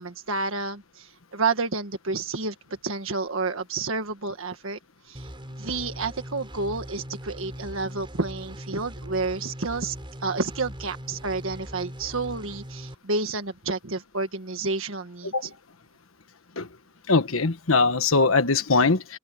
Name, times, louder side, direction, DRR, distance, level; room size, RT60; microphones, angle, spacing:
voice 1, 0.0-2.5 2.8-4.8 5.0-5.3 5.6-9.9 10.2-15.3, right 3 dB, 80° right, 1.6 m, -30 dB
sound 1, 5.1-12.9, equal, 25° right, 6.7 m, -40 dB
voice 2, 17.1-19.2, left 3 dB, 90° left, 1.4 m, -22 dB
open air
head